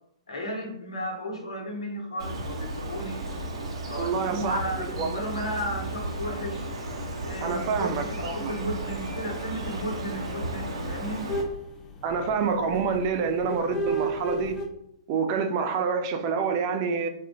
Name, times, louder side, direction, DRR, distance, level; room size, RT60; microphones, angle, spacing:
voice 1, 0.3-3.3 3.8-6.7 7.2-11.3, equal, 70° left, 1 dB, 1.2 m, -34 dB
Bird, 2.2-11.4, right 1 dB, 70° right, 1.0 m, -34 dB
voice 2, 4.0-5.2 7.4-8.5 12.0-14.6 15.1-17.1, right 5 dB, 35° right, 6 dB, 0.4 m, -27 dB
sound 1, 8.2-14.7, right 1 dB, 20° left, 0.7 m, -34 dB
4.3 x 2.4 x 3.8 m, 0.77 s
figure-of-eight pair, 115°, 3 cm